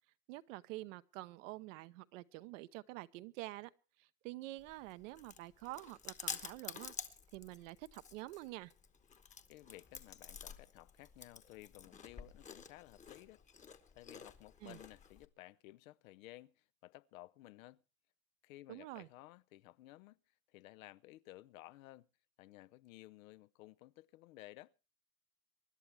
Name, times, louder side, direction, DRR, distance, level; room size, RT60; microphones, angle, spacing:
voice 1, 0.3-3.7 4.0-6.9 7.3-8.7 14.6-14.8 18.7-19.1, right 18 dB, 65° right, 0.9 m, -48 dB
Chewing mastication, 4.6-15.3, left 6 dB, 20° left, 1.1 m, -50 dB
voice 2, 9.5-13.4 13.9-17.8 18.4-20.2 20.5-22.1 22.4-24.7, left 17 dB, 75° left, 0.7 m, -56 dB
24.5 x 11.0 x 3.3 m
supercardioid pair, 125°, 41 cm